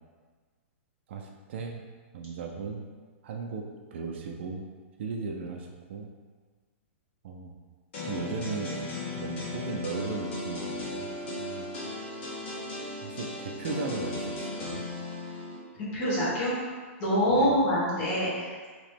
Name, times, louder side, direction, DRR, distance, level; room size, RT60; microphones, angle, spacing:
voice 1, 1.1-1.8 2.1-2.9 3.2-4.7 5.0-6.1 7.2-7.5 8.1-8.7 9.1-11.1 11.4-11.7 13.0-14.8 17.3-17.5, right 4 dB, 55° right, 2 dB, 0.4 m, -36 dB
sound 1, 7.9-15.6, left 2 dB, 50° left, 1.1 m, -36 dB
voice 2, 15.8-16.5 17.0-18.7, equal, 35° left, -8 dB, 1.3 m, -26 dB
3.0 x 2.9 x 3.3 m, 1.5 s
hypercardioid pair, 165°, 7 cm